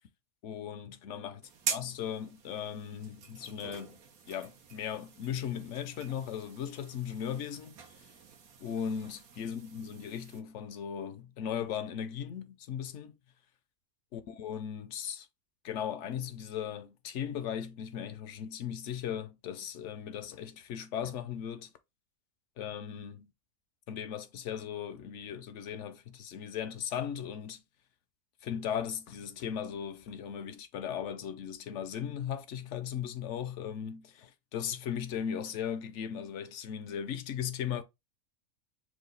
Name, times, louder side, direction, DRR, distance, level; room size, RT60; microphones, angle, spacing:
voice 1, 0.4-1.4 1.7-4.0 4.3-7.8 8.6-13.1 14.1-15.3 15.6-21.7 22.6-23.3 23.9-27.6 28.4-37.8, left 8 dB, 65° left, 0.8 m, -37 dB
sound 1, 1.4-10.4, right 6 dB, 90° right, 1.4 m, -44 dB
4.8 x 2.3 x 3.8 m
omnidirectional pair, 1.5 m